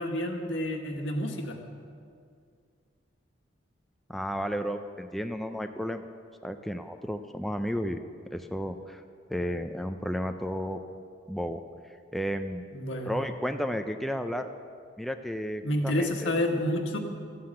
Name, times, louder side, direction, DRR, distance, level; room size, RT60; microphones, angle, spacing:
voice 1, 0.0-1.6 12.7-13.2 15.6-17.0, left 1 dB, 75° left, 3 dB, 1.6 m, -29 dB
voice 2, 4.1-6.0 6.4-8.0 8.3-9.0 9.3-10.8 11.3-11.6 11.9-12.7 13.1-14.5 15.0-16.3, equal, ahead, 6 dB, 0.4 m, -33 dB
13.5 x 9.5 x 7.7 m, 2.2 s
head